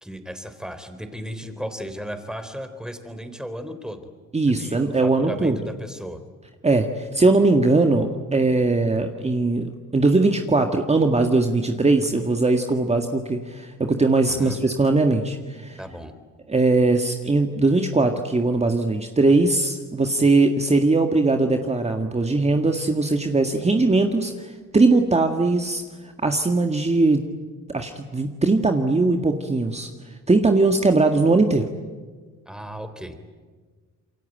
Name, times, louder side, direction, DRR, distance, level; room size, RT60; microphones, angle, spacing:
voice 1, 0.0-4.1 4.5-6.2 14.3-14.6 15.8-16.1 32.5-33.2, equal, ahead, 8 dB, 3.7 m, -35 dB
voice 2, 4.3-5.6 6.6-15.8 16.5-25.8 26.2-27.3 27.7-29.9 30.3-31.7, right 3 dB, 20° right, 5 dB, 1.8 m, -20 dB
27.5 x 23.5 x 9.2 m, 1.5 s
cardioid pair, 90°, 30 cm